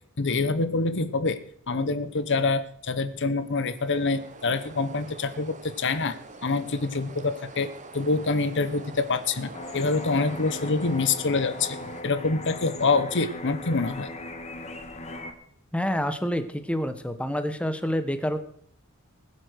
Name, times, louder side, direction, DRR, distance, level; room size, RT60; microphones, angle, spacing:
voice 1, 0.2-1.4 1.7-6.1 6.4-7.7 7.9-14.1, left 3 dB, 55° left, 12 dB, 1.0 m, -26 dB
sound 1, 3.3-12.0, right 3 dB, 35° right, 1.2 m, -45 dB
sound 2, 9.5-15.3, left 2 dB, 30° left, 1.6 m, -38 dB
voice 2, 15.7-18.4, equal, 5° left, 10 dB, 1.2 m, -28 dB
20.5 x 8.2 x 6.5 m, 0.62 s
head